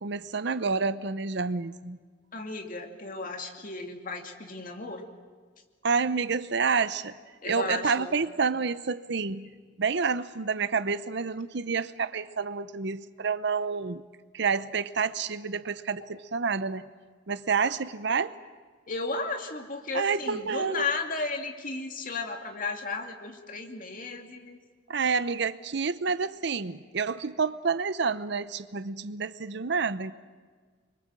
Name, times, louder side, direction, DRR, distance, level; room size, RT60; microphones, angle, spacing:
voice 1, 0.0-2.0 5.8-7.2 7.4-9.5 9.8-14.0 14.3-16.9 17.3-18.3 19.9-20.9 24.9-30.1, right 5 dB, 65° right, 14 dB, 0.7 m, -29 dB
voice 2, 2.3-5.1 7.4-8.1 18.9-24.6, left 3 dB, 45° left, 4 dB, 2.4 m, -34 dB
26.5 x 23.5 x 7.6 m, 1.5 s
head